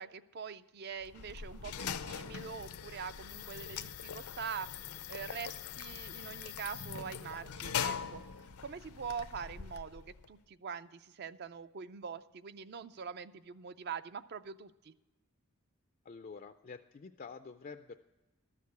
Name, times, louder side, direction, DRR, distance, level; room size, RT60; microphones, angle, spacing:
voice 1, 0.0-4.7 5.1-8.2 8.6-14.9, right 6 dB, 45° right, 14 dB, 0.4 m, -44 dB
sound 1, 1.0-10.3, left 7 dB, 85° left, 0.6 m, -42 dB
voice 2, 16.0-18.0, left 5 dB, 40° left, 8 dB, 0.3 m, -48 dB
13.0 x 6.6 x 8.2 m, 1.1 s
head